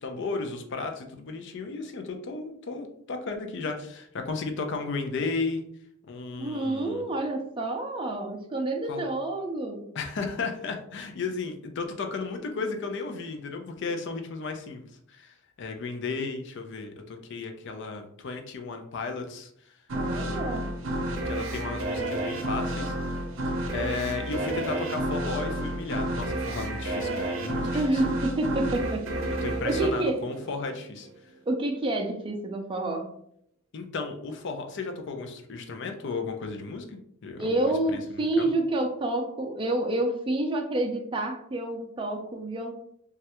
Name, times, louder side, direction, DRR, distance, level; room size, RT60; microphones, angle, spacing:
voice 1, 0.0-5.7 6.1-7.0 8.9-9.1 9.9-14.8 15.1-19.8 20.1-20.6 21.3-23.0 23.7-28.0 29.4-31.1 33.7-38.0 38.4-38.5, left 4 dB, 60° left, 5 dB, 0.5 m, -34 dB
voice 2, 6.4-9.9 19.9-20.7 27.7-29.1 29.6-30.2 31.5-33.1 37.4-42.7, right 2 dB, 25° right, 3 dB, 0.4 m, -28 dB
sound 1, 19.9-31.1, right 1 dB, 70° right, 0.6 m, -31 dB
3.1 x 2.3 x 2.9 m, 0.69 s
head